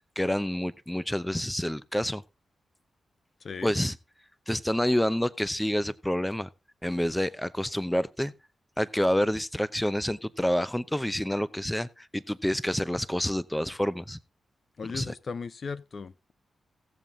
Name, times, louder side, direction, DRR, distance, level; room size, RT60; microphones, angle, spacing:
voice 1, 0.2-2.2 3.6-4.0 4.5-6.5 6.8-8.3 8.8-14.2 14.9-15.1, equal, 5° left, 0.7 m, -28 dB
voice 2, 3.4-3.7 14.8-16.3, left 5 dB, 55° left, 0.5 m, -37 dB
16.5 x 7.4 x 3.8 m
cardioid pair, 60°, 0 cm